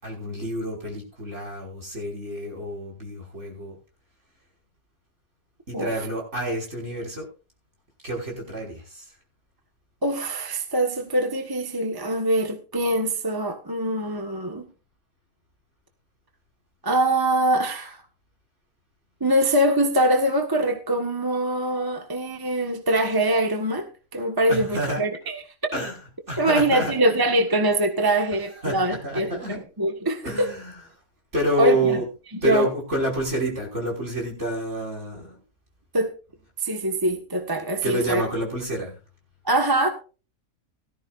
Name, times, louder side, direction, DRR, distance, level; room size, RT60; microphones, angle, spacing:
voice 1, 0.0-3.8 5.7-7.3 8.0-9.1 24.5-25.4 25.7-27.0 28.3-29.6 30.2-30.9 31.3-32.1 32.4-35.4 37.8-39.0, right 1 dB, 55° right, 5.9 m, -28 dB
voice 2, 10.0-14.7 16.8-18.0 19.2-25.3 26.4-30.5 31.6-32.0 32.4-32.7 35.9-36.1 36.6-38.2 39.4-39.9, right 1 dB, 15° right, 1.4 m, -23 dB
18.0 x 13.5 x 2.5 m
omnidirectional pair, 1.5 m